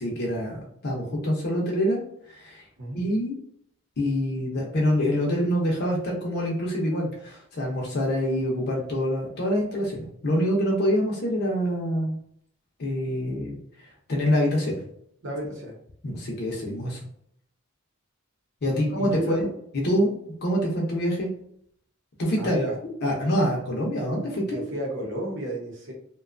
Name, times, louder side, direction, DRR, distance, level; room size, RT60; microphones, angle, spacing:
voice 1, 0.0-2.0 2.3-2.6 2.9-3.3 4.0-12.2 12.8-14.8 16.0-17.0 18.6-19.5 19.7-20.1 20.4-21.3 22.2-22.6 23.0-24.6, equal, 50° left, -2 dB, 0.6 m, -26 dB
voice 2, 15.2-15.7 18.7-19.5 22.4-22.8 24.4-25.9, right 1 dB, 60° right, -2 dB, 0.8 m, -32 dB
2.6 x 2.2 x 2.4 m, 0.68 s
head